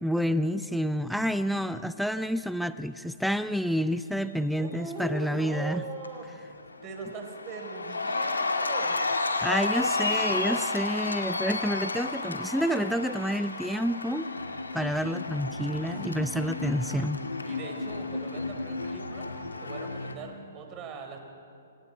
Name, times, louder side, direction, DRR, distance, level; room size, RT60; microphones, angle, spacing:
voice 1, 0.0-5.8 9.4-14.3 14.7-17.2, equal, ahead, 13 dB, 0.5 m, -29 dB
voice 2, 4.6-6.5 6.8-9.0 9.3-9.6 10.0-10.6 16.0-16.4 17.4-19.3 19.6-21.2, right 4 dB, 30° right, 3 dB, 4.3 m, -40 dB
Cheering, 5.3-5.7 6.0-20.1, left 3 dB, 85° left, 2.0 m, -32 dB
28.0 x 26.5 x 4.5 m, 2.7 s
figure-of-eight pair, 125°, 0 cm